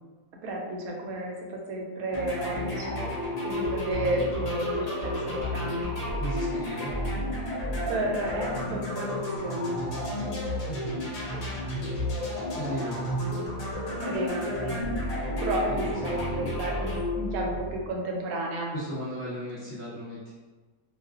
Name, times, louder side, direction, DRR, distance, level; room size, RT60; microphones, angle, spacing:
voice 1, 0.4-3.0 3.4-5.9 7.9-9.8 13.7-14.8 15.4-18.7, right 1 dB, 80° right, 0 dB, 1.0 m, -32 dB
sound 1, 2.1-18.0, left 1 dB, 75° left, 0.3 m, -31 dB
voice 2, 6.2-6.9 10.7-11.0 11.4-11.6 12.6-13.0 15.7-16.3 18.7-20.2, equal, 45° left, -11 dB, 0.7 m, -36 dB
2.4 x 2.4 x 2.3 m, 1.3 s
omnidirectional pair, 1.5 m